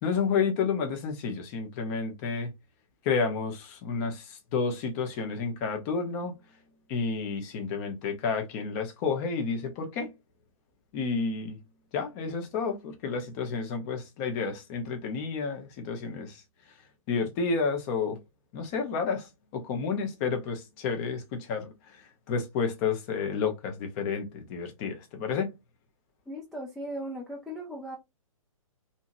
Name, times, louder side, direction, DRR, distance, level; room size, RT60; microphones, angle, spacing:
voice 1, 0.0-2.5 3.0-6.4 6.9-10.1 10.9-11.6 11.9-16.4 17.1-18.2 18.5-25.5, left 5 dB, 25° left, 0.8 m, -30 dB
voice 2, 26.3-28.0, equal, ahead, 0.3 m, -37 dB
2.8 x 2.7 x 2.5 m
figure-of-eight pair, 125°, 18 cm